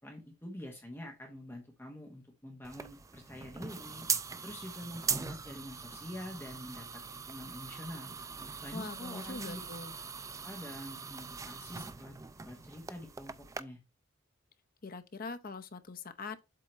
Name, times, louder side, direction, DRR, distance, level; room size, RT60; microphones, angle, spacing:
voice 1, 0.0-4.0 4.4-7.0 7.3-8.1 8.6-9.6 10.4-12.2 12.4-13.8, left 1 dB, 10° left, 1.1 m, -46 dB
sound 1, 2.6-13.6, right 5 dB, 15° right, 0.3 m, -40 dB
voice 2, 8.7-10.0 14.8-16.4, left 4 dB, 45° left, 0.7 m, -43 dB
7.7 x 3.7 x 4.2 m
head